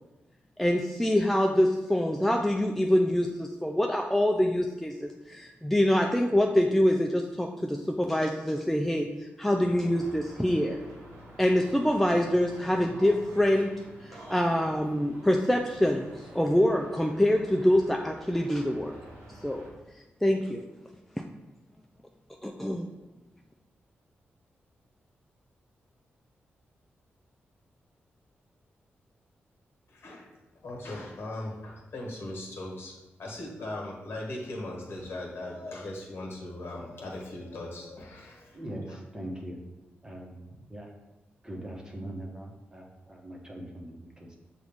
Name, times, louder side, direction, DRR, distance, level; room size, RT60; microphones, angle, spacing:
voice 1, 0.6-10.8 11.4-13.7 14.0-19.0 19.4-19.7 20.2-20.6 22.4-22.9, left 1 dB, 5° left, 2 dB, 0.3 m, -25 dB
sound 1, 9.5-19.7, right 1 dB, 85° right, 1.3 m, -49 dB
voice 2, 29.9-30.3 30.6-32.9 33.2-38.6, left 1 dB, 65° left, -1 dB, 1.3 m, -39 dB
voice 3, 38.5-39.6 40.0-40.4 40.7-40.9 41.4-44.3, right 1 dB, 15° right, -1 dB, 1.0 m, -41 dB
6.2 x 2.4 x 3.5 m, 1.0 s
cardioid pair, 70°, 4 cm